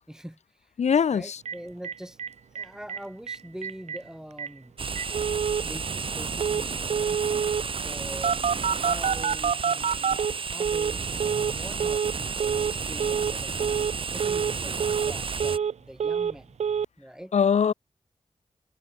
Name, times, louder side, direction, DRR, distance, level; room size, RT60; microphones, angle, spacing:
voice 1, 0.1-0.7 1.1-2.2 2.5-4.8 5.6-7.2 7.8-16.6 17.0-17.3, equal, 5° right, 2.2 m, -44 dB
voice 2, 0.8-1.4 17.3-17.7, left 7 dB, 85° left, 1.1 m, -22 dB
Telephone, 1.5-1.6 1.8-1.9 2.2-2.3 2.6-3.0 3.3-3.4 3.6-4.0 4.4-4.5 5.0-5.6 6.4-6.6 6.9-7.6 8.2-10.9 11.2-11.5 11.8-12.1 12.4-12.7 13.0-13.3 13.6-13.9 14.2-14.5 14.8-15.7 16.0-16.3 16.6-16.9, right 7 dB, 80° right, 0.7 m, -27 dB
sound 1, 4.8-15.6, right 5 dB, 50° right, 0.9 m, -32 dB
cardioid pair, 70°, 11 cm